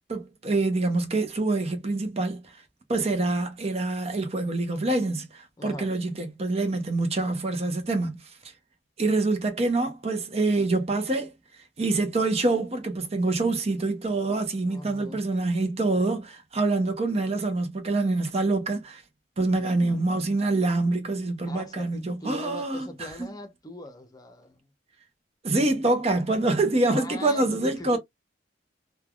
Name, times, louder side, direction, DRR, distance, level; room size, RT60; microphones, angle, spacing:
voice 1, 0.1-2.5 2.9-8.2 9.0-11.3 11.8-19.0 19.4-22.9 23.2-23.3 25.4-28.0, right 2 dB, 35° right, 0.7 m, -26 dB
voice 2, 5.6-5.9 14.7-15.3 19.6-19.9 21.4-24.6 26.9-28.0, left 1 dB, 20° left, 0.7 m, -41 dB
3.2 x 2.3 x 2.3 m
head